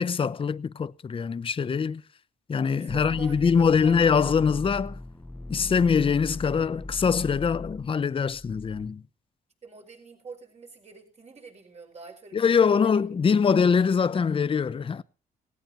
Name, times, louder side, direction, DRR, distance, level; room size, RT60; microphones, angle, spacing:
voice 1, 0.0-2.0 2.5-5.0 5.5-9.0 12.3-15.0, left 6 dB, 30° left, 0.7 m, -23 dB
voice 2, 2.7-4.0 9.6-13.1, right 4 dB, 40° right, 5.7 m, -45 dB
sound 1, 2.9-8.9, left 1 dB, 10° left, 1.0 m, -39 dB
18.0 x 17.5 x 3.0 m
cardioid pair, 90°, 17 cm